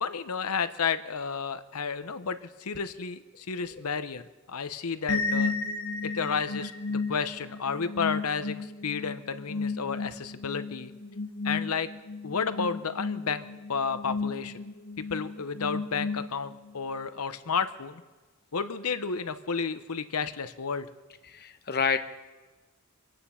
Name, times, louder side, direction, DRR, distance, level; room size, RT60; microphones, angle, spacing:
voice 1, 0.0-4.2 4.5-5.5 6.0-10.9 11.4-11.9 12.2-14.5 15.0-18.0 18.5-20.9, left 5 dB, 85° left, 12 dB, 0.9 m, -32 dB
sound 1, 5.1-16.7, left 3 dB, 70° left, 1.2 m, -34 dB
voice 2, 21.3-22.0, left 6 dB, 45° left, 9 dB, 0.9 m, -28 dB
25.0 x 9.1 x 5.7 m, 1.3 s
head